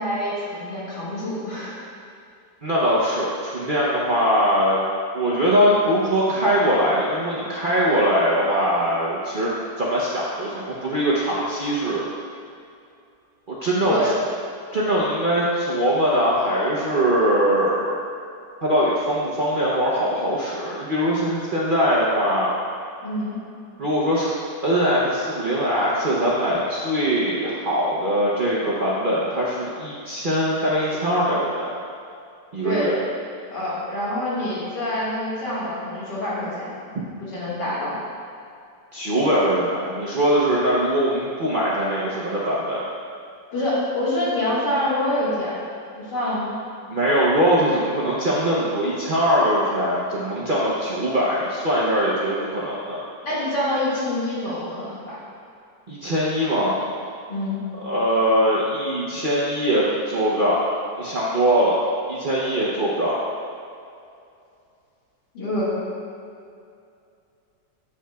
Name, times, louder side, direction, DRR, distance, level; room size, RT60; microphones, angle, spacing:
voice 1, 0.0-1.8 13.8-14.1 23.0-23.4 32.6-33.0 33.5-36.7 37.2-38.0 43.5-45.5 46.0-46.5 53.2-55.2 57.3-57.6 65.3-65.8, left 1 dB, 80° left, -8 dB, 2.4 m, -26 dB
voice 2, 2.6-4.8 5.1-9.5 9.8-12.0 13.5-14.1 14.7-18.0 18.6-22.5 23.8-31.7 32.5-33.0 38.9-42.8 46.9-53.0 55.9-56.8 57.8-60.6 61.0-61.8 62.1-63.2, equal, 55° right, -6 dB, 0.5 m, -21 dB
7.5 x 7.0 x 2.3 m, 2.5 s
omnidirectional pair, 1.9 m